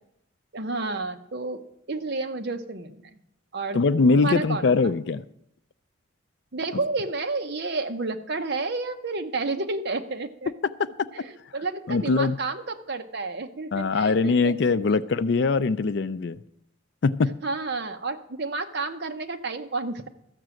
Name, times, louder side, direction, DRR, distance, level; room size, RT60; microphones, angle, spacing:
voice 1, 0.5-1.6 1.9-3.0 3.5-3.8 4.1-4.7 6.5-10.5 11.1-14.5 14.9-15.0 17.4-20.1, right 3 dB, 50° right, 6 dB, 0.8 m, -30 dB
voice 2, 3.7-5.2 11.9-12.4 13.7-16.4 17.0-17.4, left 4 dB, 55° left, 14 dB, 0.4 m, -22 dB
13.5 x 6.0 x 7.7 m, 0.78 s
head